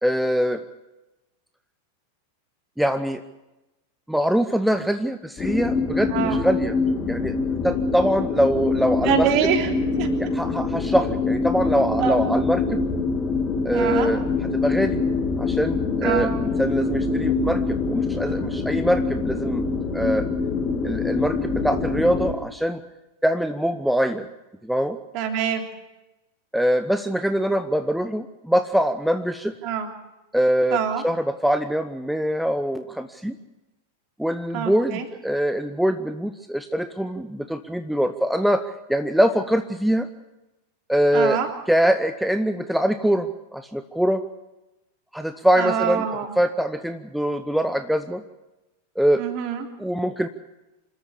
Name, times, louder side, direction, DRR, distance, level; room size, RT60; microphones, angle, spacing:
voice 1, 0.0-0.6 2.8-3.2 4.1-6.7 7.1-7.4 7.6-9.3 10.2-12.8 13.6-14.2 14.5-15.0 15.4-19.6 19.9-20.3 20.8-22.8 23.2-24.3 24.6-25.0 26.5-29.5 30.3-30.8 31.0-33.4 34.2-40.1 40.9-41.4 41.7-44.3 45.1-46.1 46.4-48.2 49.0-49.2 49.8-50.3, equal, ahead, 9 dB, 0.8 m, -23 dB
sound 1, 5.4-22.3, left 4 dB, 20° left, 2.8 m, -25 dB
voice 2, 9.0-9.7 10.0-10.1 12.0-12.1 13.7-14.1 16.0-16.3 25.1-25.6 29.6-29.9 30.7-31.0 34.5-35.0 41.1-41.5 45.6-46.3 49.2-49.6, right 8 dB, 40° right, 3 dB, 3.4 m, -24 dB
27.0 x 13.0 x 8.3 m, 1.0 s
figure-of-eight pair, 90°, 0 cm